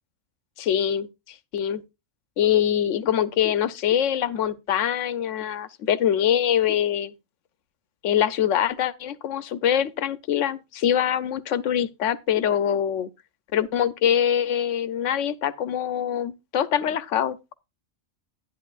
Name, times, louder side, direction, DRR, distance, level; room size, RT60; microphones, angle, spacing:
voice 1, 0.6-1.1 1.5-1.8 2.4-7.1 8.0-13.1 13.5-17.5, left 9 dB, 90° left, 1.0 m, -24 dB
11.0 x 10.5 x 2.4 m
omnidirectional pair, 1.2 m